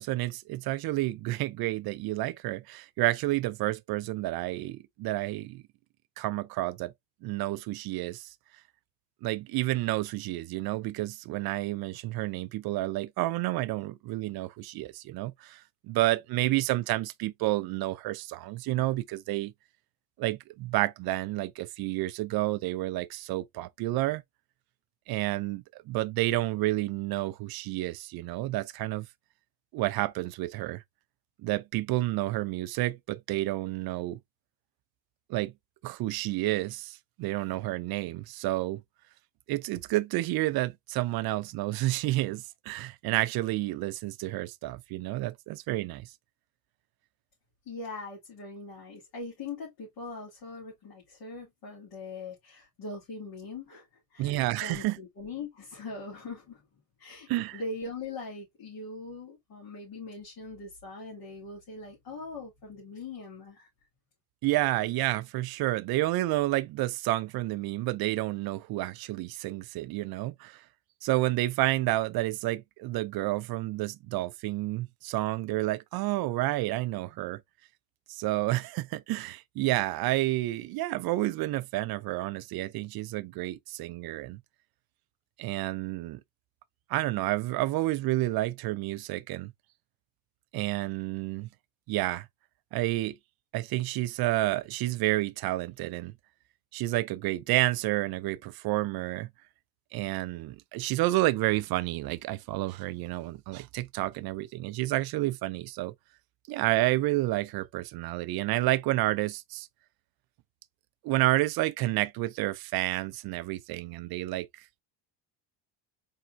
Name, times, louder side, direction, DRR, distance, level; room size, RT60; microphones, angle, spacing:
voice 1, 0.0-5.6 6.2-6.9 7.2-8.3 9.2-19.5 20.2-24.2 25.1-29.1 29.7-30.8 31.4-34.2 35.3-35.5 35.8-38.8 39.5-46.1 54.2-55.0 57.3-57.6 64.4-70.6 71.0-77.4 78.1-84.4 85.4-86.2 86.9-89.5 90.5-91.5 91.9-92.3 92.7-93.2 93.5-96.1 96.7-99.3 99.9-105.9 106.5-109.7 111.0-114.6, right 17 dB, 50° right, 0.5 m, -30 dB
voice 2, 47.7-53.9 54.1-56.6 57.0-63.7, left 3 dB, 50° left, 2.6 m, -41 dB
4.3 x 3.6 x 2.5 m
cardioid pair, 135°, 49 cm